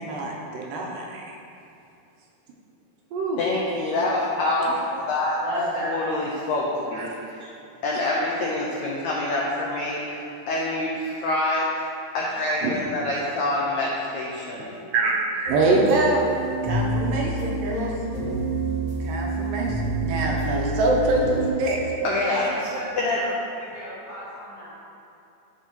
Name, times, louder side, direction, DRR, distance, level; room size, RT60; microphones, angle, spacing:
voice 1, 0.0-1.4 3.1-3.4 4.7-4.8 6.9-7.1 12.6-12.7 14.9-16.3 16.6-17.9 19.0-22.1, right 2 dB, 80° right, -1 dB, 2.3 m, -24 dB
voice 2, 3.4-5.4 5.8-7.5 7.8-11.7 12.1-14.7 22.0-22.4 23.0-23.2, left 2 dB, 85° left, -4 dB, 1.6 m, -26 dB
voice 3, 5.4-6.0 22.1-23.3 23.5-24.8, equal, 60° right, -11 dB, 0.9 m, -33 dB
sound 1, 15.5-21.5, right 1 dB, 45° right, 1.4 m, -28 dB
13.0 x 4.4 x 3.0 m, 2.7 s
omnidirectional pair, 4.2 m